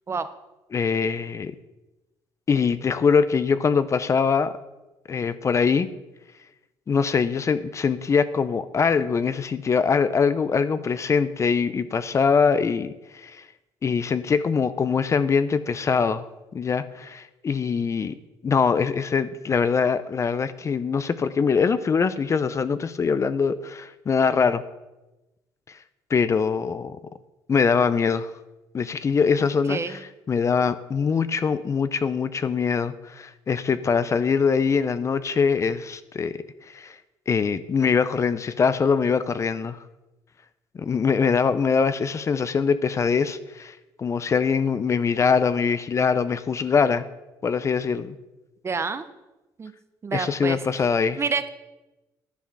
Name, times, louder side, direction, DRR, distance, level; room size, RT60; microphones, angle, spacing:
voice 1, 0.7-1.5 2.5-4.5 5.1-5.9 6.9-13.4 13.8-16.2 16.5-18.1 18.4-24.6 26.1-27.0 27.5-28.3 28.7-30.0 30.3-36.4 36.7-37.0 37.3-39.8 40.7-47.0 47.4-48.1 50.1-51.2, left 5 dB, 35° left, 14 dB, 0.5 m, -23 dB
voice 2, 29.7-30.0 48.6-49.1 49.6-49.7 50.0-50.8 51.2-51.5, right 5 dB, 30° right, 11 dB, 0.8 m, -28 dB
10.5 x 7.1 x 6.0 m, 1.0 s
cardioid pair, 95°, 9 cm